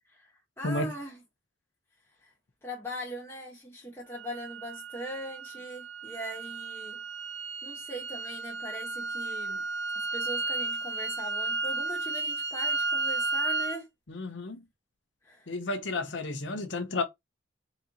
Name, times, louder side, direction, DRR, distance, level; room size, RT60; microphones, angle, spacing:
voice 1, 0.6-1.2 2.2-2.3 2.6-7.0 7.6-9.6 9.9-13.9 15.2-15.6, equal, 15° left, 1.2 m, -41 dB
sound 1, 4.1-13.8, right 3 dB, 60° right, 0.6 m, -33 dB
voice 2, 14.1-14.6 15.5-17.0, left 2 dB, 65° left, 0.8 m, -32 dB
4.1 x 3.9 x 2.8 m
head